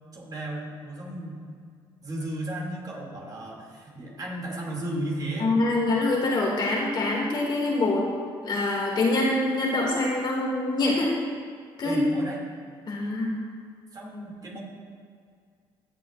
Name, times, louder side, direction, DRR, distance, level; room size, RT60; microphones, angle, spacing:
voice 1, 0.1-1.4 2.0-5.5 11.8-12.4 13.9-14.6, right 1 dB, 40° right, -2 dB, 2.6 m, -34 dB
voice 2, 5.4-8.0 8.4-11.1 11.8-12.1 12.9-13.3, left 2 dB, 50° left, -3 dB, 2.3 m, -25 dB
17.5 x 6.8 x 2.5 m, 2.2 s
supercardioid pair, 75°, 10 cm